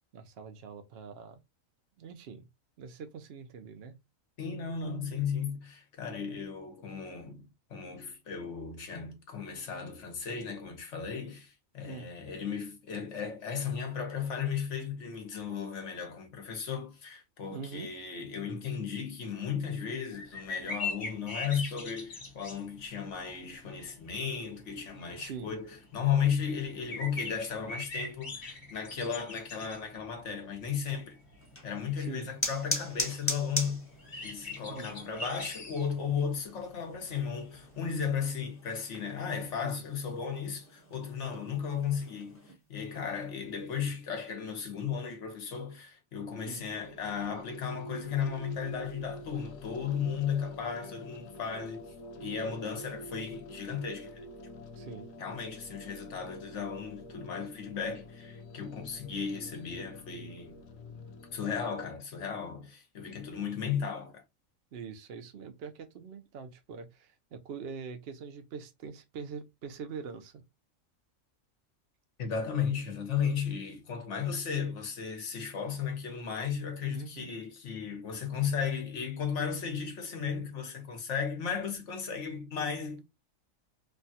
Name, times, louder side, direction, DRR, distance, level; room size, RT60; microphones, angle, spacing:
voice 1, 0.1-1.4 2.0-2.5 2.8-4.0 11.8-12.1 17.5-17.9 25.2-25.5 32.0-32.3 34.7-35.0 39.6-39.8 46.5-46.6 54.8-55.1 64.7-70.4 73.5-73.6 76.8-77.3, right 5 dB, 55° right, 0.8 m, -43 dB
voice 2, 4.4-31.2 31.6-33.8 34.2-51.9 52.2-54.3 55.2-60.6 61.3-64.2 72.2-83.0, left 7 dB, 65° left, 1.2 m, -35 dB
sound 1, 20.1-38.1, left 3 dB, 40° left, 1.1 m, -43 dB
sound 2, 31.4-42.5, left 1 dB, 10° left, 0.8 m, -41 dB
sound 3, 46.4-61.7, equal, 80° left, 1.0 m, -47 dB
3.3 x 2.3 x 2.6 m
omnidirectional pair, 1.4 m